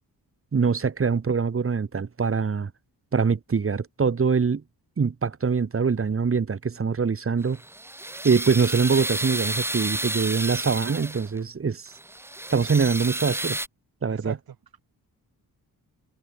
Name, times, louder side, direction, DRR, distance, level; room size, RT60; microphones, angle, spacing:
voice 1, 0.5-2.7 3.1-4.6 5.0-7.6 8.2-11.9 12.5-13.6 14.0-14.3, right 5 dB, 35° right, 1.5 m, -23 dB
sound 1, 7.4-11.4 11.9-13.7, right 1 dB, 5° right, 0.7 m, -31 dB
voice 2, 14.1-14.8, right 8 dB, 70° right, 2.7 m, -40 dB
cardioid pair, 85°, 38 cm